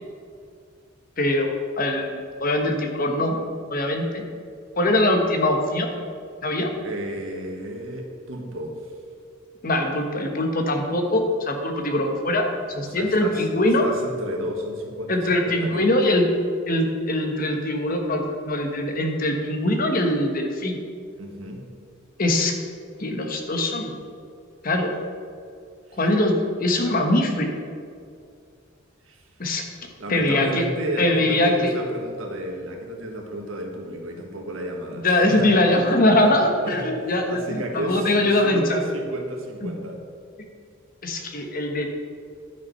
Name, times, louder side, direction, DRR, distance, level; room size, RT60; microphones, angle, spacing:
voice 1, 1.2-3.4 3.7-4.2 4.8-5.9 6.4-6.7 9.6-13.9 15.1-16.2 16.7-20.8 22.2-22.5 23.0-23.9 24.6-24.9 26.0-26.3 26.6-27.5 29.4-29.6 30.1-30.6 31.0-31.7 34.9-38.8 39.6-39.7 41.0-41.9, left 1 dB, 45° left, 3 dB, 1.2 m, -22 dB
voice 2, 6.8-8.9 12.8-15.9 21.2-21.6 25.9-26.0 26.8-27.1 29.0-29.3 30.0-35.8 36.2-36.3 36.7-40.0, right 1 dB, 85° right, 1 dB, 1.6 m, -32 dB
10.5 x 5.9 x 5.5 m, 2.3 s
head